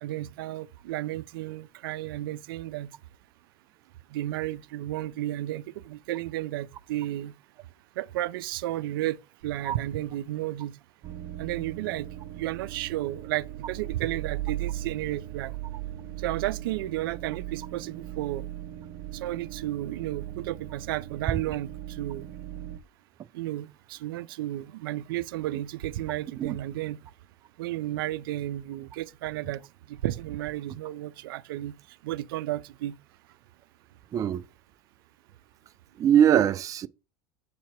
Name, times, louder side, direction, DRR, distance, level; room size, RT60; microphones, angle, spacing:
voice 1, 0.0-2.9 4.1-7.3 8.0-9.2 9.4-10.8 11.4-12.1 12.3-15.5 16.2-18.5 19.1-22.3 23.3-27.0 27.6-29.6 29.9-31.7 32.0-33.0, right 15 dB, 85° right, 0.4 m, -33 dB
sound 1, 11.0-22.8, right 13 dB, 45° right, 0.8 m, -38 dB
voice 2, 36.0-36.9, right 9 dB, 30° right, 0.4 m, -21 dB
7.4 x 2.9 x 4.5 m
supercardioid pair, 120°, 12 cm